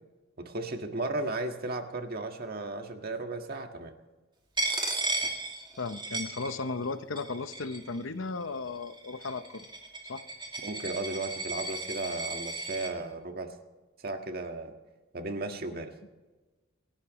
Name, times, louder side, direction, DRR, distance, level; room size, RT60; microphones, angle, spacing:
voice 1, 0.4-3.9 10.6-13.5 14.0-14.7 15.1-15.9, right 2 dB, 50° right, 4 dB, 1.8 m, -35 dB
Coin (dropping), 4.6-6.9 7.2-8.0 8.7-12.9, right 2 dB, 25° right, 2.4 m, -35 dB
voice 2, 5.8-9.7 10.1-10.2, left 3 dB, 75° left, 11 dB, 0.9 m, -35 dB
27.5 x 12.0 x 3.1 m, 1.2 s
head